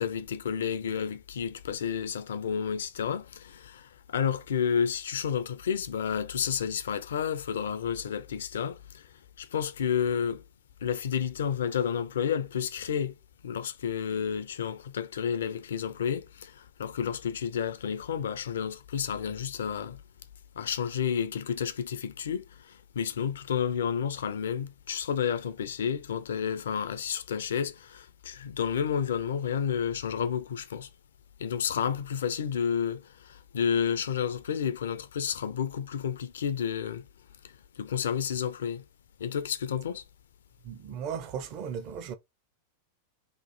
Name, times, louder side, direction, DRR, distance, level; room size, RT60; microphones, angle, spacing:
voice 1, 0.0-9.0 9.4-10.4 10.8-13.2 13.4-20.0 20.6-30.9 31.4-37.0 37.8-38.8 39.2-40.0, left 7 dB, 65° left, 0.4 m, -31 dB
voice 2, 40.6-42.1, right 7 dB, 40° right, 0.6 m, -36 dB
3.0 x 2.5 x 3.9 m
figure-of-eight pair, 90°, 0 cm